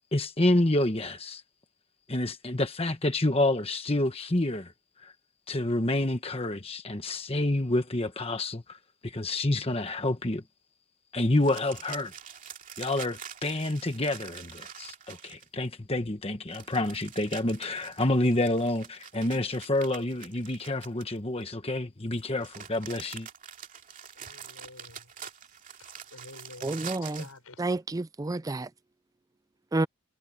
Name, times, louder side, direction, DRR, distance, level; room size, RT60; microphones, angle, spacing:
voice 1, 0.1-1.4 2.1-4.7 5.0-5.1 5.5-8.8 9.0-10.4 11.1-12.1 12.8-23.3, left 1 dB, 25° left, 1.2 m, -28 dB
sound 1, 11.4-15.7 16.5-21.4 22.1-27.4, right 8 dB, 35° right, 2.6 m, -45 dB
voice 2, 24.2-25.0 26.1-27.6, left 2 dB, 85° left, 5.5 m, -49 dB
voice 3, 26.6-27.2 27.6-28.7 29.7-29.9, right 2 dB, 15° right, 0.3 m, -29 dB
head